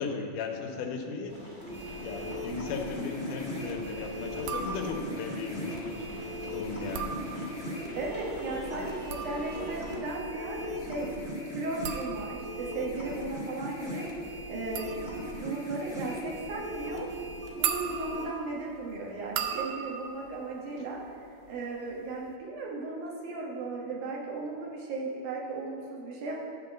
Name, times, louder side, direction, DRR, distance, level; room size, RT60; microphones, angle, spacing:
voice 1, 0.0-6.1 6.5-7.5 20.7-20.9, left 5 dB, 75° left, 3 dB, 2.3 m, -37 dB
sound 1, 1.3-10.0, equal, 30° right, 0.8 m, -46 dB
sound 2, 1.6-18.2, equal, 5° left, 1.3 m, -38 dB
sound 3, 4.5-5.2 6.7-7.8 8.8-21.5 21.8-22.4, right 8 dB, 85° right, 1.6 m, -39 dB
voice 2, 7.9-11.1 11.5-14.0 14.5-14.9 15.3-17.1 17.6-21.0 21.5-26.3, right 3 dB, 70° right, -3 dB, 2.6 m, -36 dB
11.0 x 3.7 x 7.0 m, 2.3 s
omnidirectional pair, 3.9 m